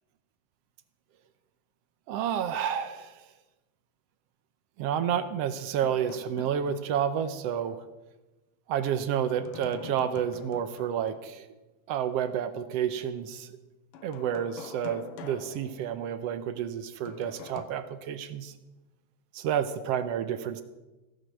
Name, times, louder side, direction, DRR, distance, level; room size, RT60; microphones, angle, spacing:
voice 1, 2.1-3.2 4.8-7.8 8.7-11.5 11.9-13.5 14.0-18.5 19.3-20.6, right 9 dB, 75° right, 11 dB, 1.5 m, -30 dB
sound 1, 5.8-7.3 7.6-7.7 9.4-11.4 13.9-16.4 17.1-17.6, left 7 dB, 65° left, 1.6 m, -46 dB
16.0 x 9.3 x 6.5 m, 1.1 s
omnidirectional pair, 3.4 m